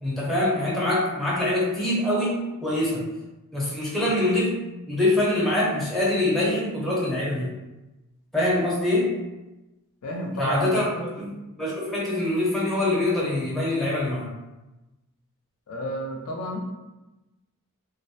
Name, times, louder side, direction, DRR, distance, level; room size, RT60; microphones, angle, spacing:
voice 1, 0.0-3.1 3.5-4.6 4.9-7.5 8.3-9.2 10.4-10.9 11.2-11.3 11.6-14.3, left 1 dB, ahead, -7 dB, 0.5 m, -24 dB
voice 2, 10.0-11.0 15.7-16.6, equal, 90° left, 0 dB, 0.5 m, -31 dB
2.4 x 2.0 x 2.6 m, 1.0 s
head